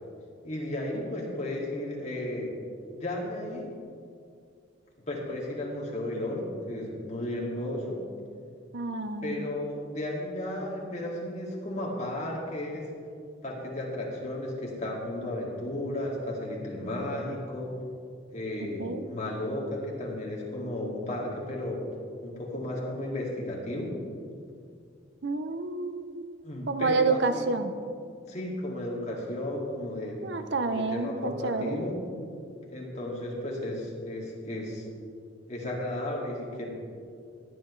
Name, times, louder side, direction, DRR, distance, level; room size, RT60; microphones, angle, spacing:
voice 1, 0.4-2.5 2.9-3.7 5.1-8.0 9.2-12.9 13.4-17.7 18.3-21.8 22.2-23.9 26.4-27.5 28.3-30.2 30.7-31.9 32.7-34.9 35.5-36.7, left 1 dB, 40° left, -3 dB, 2.3 m, -34 dB
voice 2, 8.7-9.5 18.6-19.1 25.2-26.3 26.7-27.7 30.2-31.8, right 3 dB, 65° right, 9 dB, 0.7 m, -29 dB
16.5 x 10.0 x 3.2 m, 2.4 s
head